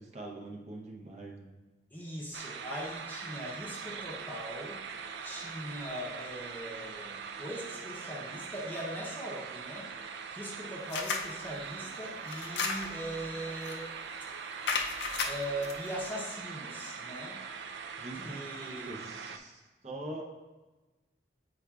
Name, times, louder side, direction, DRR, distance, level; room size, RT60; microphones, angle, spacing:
voice 1, 0.0-1.5 17.9-18.3 18.9-20.2, right 2 dB, 40° right, 0 dB, 0.7 m, -43 dB
voice 2, 1.9-4.8 5.2-9.9 10.3-13.9 15.2-17.4 18.2-19.1, equal, 10° left, -4 dB, 0.7 m, -40 dB
sound 1, 2.3-19.4, right 6 dB, 80° right, 0.4 m, -42 dB
sound 2, 10.9-11.3 12.3-13.1 13.7-13.9 14.7-15.7, left 4 dB, 80° left, 0.5 m, -34 dB
8.5 x 4.8 x 2.3 m, 1.2 s
head